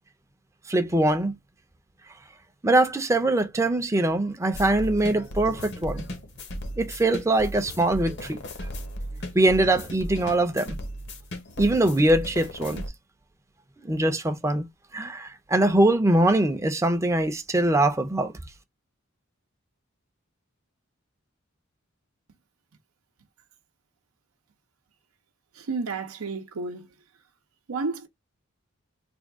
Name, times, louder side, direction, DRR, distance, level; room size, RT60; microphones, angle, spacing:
voice 1, 0.7-1.4 2.6-6.0 6.8-8.4 9.3-10.8 11.6-12.8 13.8-14.7 14.9-18.3, right 1 dB, 15° right, 0.5 m, -22 dB
sound 1, 4.5-12.9, equal, 55° left, 0.9 m, -36 dB
voice 2, 25.5-26.9 27.7-28.1, right 4 dB, 90° right, 0.6 m, -31 dB
3.5 x 2.3 x 3.5 m
head